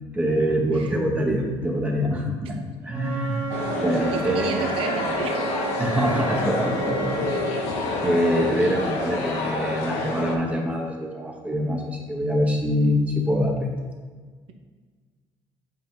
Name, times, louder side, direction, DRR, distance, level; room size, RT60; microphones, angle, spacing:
voice 1, 0.1-4.7 5.8-7.4 8.0-13.7, equal, 10° right, 0 dB, 0.9 m, -25 dB
Wind instrument woodwind instrument, 2.9-7.7, right 7 dB, 30° right, 1.7 m, -32 dB
sound 1, 3.5-10.3, left 3 dB, 80° left, 1.1 m, -28 dB
voice 2, 4.1-5.4, right 5 dB, 60° right, 4 dB, 0.7 m, -31 dB
7.9 x 4.4 x 3.7 m, 1.5 s
cardioid pair, 115°, 11 cm